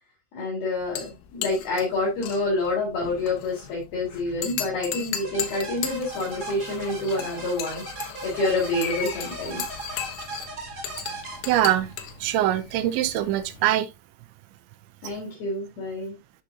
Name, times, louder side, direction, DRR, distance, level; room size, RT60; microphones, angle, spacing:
voice 1, 0.3-9.7 15.0-16.1, left 2 dB, 55° left, 5.0 m, -28 dB
sound 1, 0.8-13.1, left 10 dB, 75° left, 3.1 m, -37 dB
sound 2, 5.2-12.1, right 3 dB, 40° right, 1.4 m, -38 dB
sound 3, 8.5-13.7, left 4 dB, 40° left, 4.2 m, -42 dB
voice 2, 11.5-11.9 12.2-13.9, right 13 dB, 85° right, 3.1 m, -23 dB
12.5 x 6.3 x 2.7 m
omnidirectional pair, 5.3 m